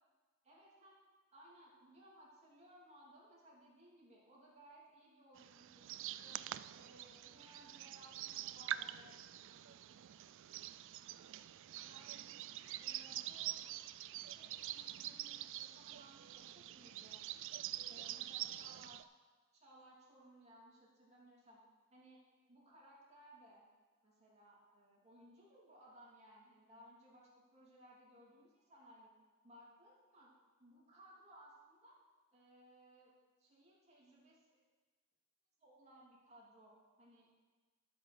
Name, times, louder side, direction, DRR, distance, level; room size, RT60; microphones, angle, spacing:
voice 1, 0.4-1.0 1.3-9.2 9.5-9.8 11.7-12.4 12.8-13.7 14.2-17.2 17.9-19.1 19.5-21.6 21.9-23.6 24.0-29.1 29.4-30.3 30.6-32.0 32.3-33.1 33.4-34.6 35.6-37.3, right 1 dB, 30° right, -5 dB, 3.1 m, -62 dB
sound 1, 5.4-19.0, right 13 dB, 60° right, 0.3 m, -46 dB
12.5 x 6.2 x 6.4 m, 1.3 s
head